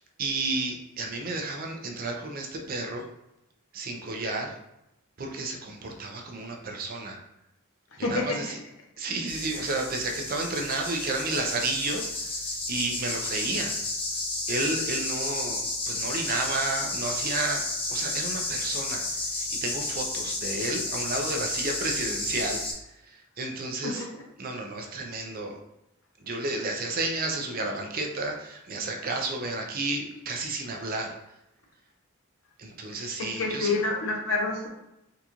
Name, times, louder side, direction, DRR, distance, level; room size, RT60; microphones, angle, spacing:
voice 1, 0.0-3.1 3.7-4.6 5.2-7.2 8.0-8.6 9.0-13.8 14.5-17.6 17.9-24.1 24.4-25.6 26.2-31.2 32.6-33.7, right 2 dB, 45° right, 2 dB, 0.5 m, -32 dB
sound 1, 9.3-22.7, left 2 dB, 25° left, 0.7 m, -32 dB
voice 2, 33.2-34.7, left 3 dB, 70° left, 1 dB, 0.7 m, -27 dB
3.8 x 2.3 x 2.9 m, 0.87 s
head